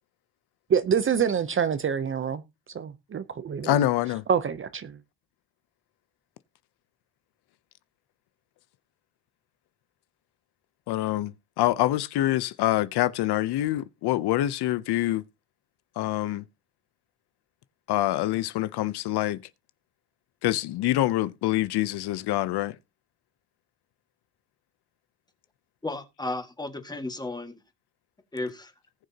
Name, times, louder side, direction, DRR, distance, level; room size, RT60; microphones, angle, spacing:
voice 1, 0.7-2.4 2.7-3.8 4.3-5.0, right 7 dB, 30° right, 0.7 m, -26 dB
voice 2, 3.6-4.2 10.9-15.2 16.0-16.4 17.9-19.4 20.4-22.8, left 14 dB, 75° left, 0.7 m, -25 dB
voice 3, 25.8-27.6 28.3-28.7, left 2 dB, 10° left, 1.7 m, -34 dB
19.0 x 6.5 x 2.8 m
cardioid pair, 135°, 40 cm